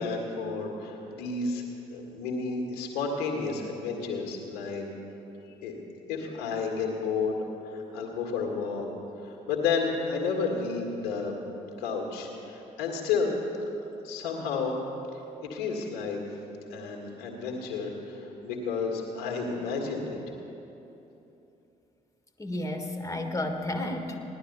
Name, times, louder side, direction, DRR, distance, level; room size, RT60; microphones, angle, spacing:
voice 1, 0.0-4.9 5.6-5.8 6.1-8.9 9.2-11.3 11.8-13.3 14.0-14.8 15.5-16.2 16.7-20.2, left 4 dB, 70° left, 1 dB, 1.7 m, -31 dB
voice 2, 22.4-24.2, left 1 dB, 15° left, 5 dB, 1.5 m, -32 dB
17.0 x 11.0 x 5.5 m, 3.0 s
figure-of-eight pair, 40°, 19 cm